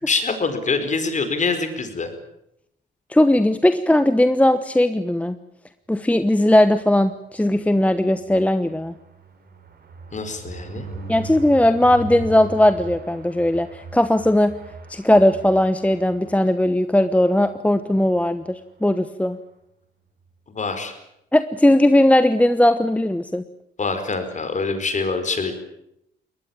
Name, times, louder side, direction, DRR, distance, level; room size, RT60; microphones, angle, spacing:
voice 1, 0.0-2.1 10.1-10.8 20.5-20.9 23.8-25.5, left 4 dB, 40° left, 8 dB, 4.8 m, -25 dB
voice 2, 3.1-5.4 5.9-8.9 11.1-14.5 14.9-19.4 21.3-23.4, left 1 dB, 5° left, 11 dB, 1.1 m, -18 dB
sound 1, 7.9-16.7 17.1-17.3 17.5-17.6 17.9-18.2, right 2 dB, 50° right, 5.8 m, -39 dB
22.5 x 19.5 x 8.8 m, 0.80 s
cardioid pair, 90°, 20 cm